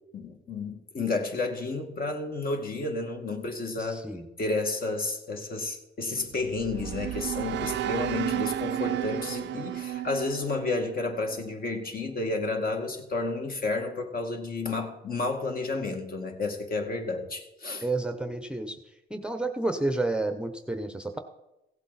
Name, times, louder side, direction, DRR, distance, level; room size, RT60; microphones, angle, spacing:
voice 1, 0.1-4.0 4.4-17.9, left 3 dB, 50° left, 3 dB, 2.1 m, -31 dB
voice 2, 3.8-4.3 17.8-18.8 19.1-21.2, right 2 dB, 5° right, 7 dB, 0.9 m, -30 dB
sound 1, 6.3-11.5, right 12 dB, 65° right, 0.5 m, -33 dB
16.0 x 8.2 x 4.2 m, 0.93 s
cardioid pair, 90°, 20 cm